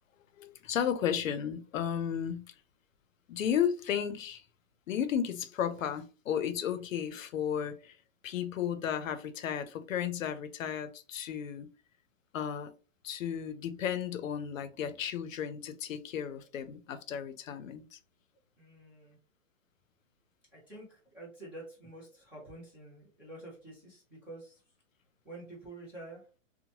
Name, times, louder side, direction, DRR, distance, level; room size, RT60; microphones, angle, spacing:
voice 1, 0.4-2.5 3.3-4.4 4.9-8.0 8.2-11.7 12.3-12.7 13.0-18.0, left 9 dB, 90° left, 0.6 m, -34 dB
voice 2, 18.6-19.2 20.5-24.6 25.2-26.3, right 2 dB, 5° right, 0.4 m, -48 dB
2.9 x 2.1 x 2.7 m
hypercardioid pair, 155°, 38 cm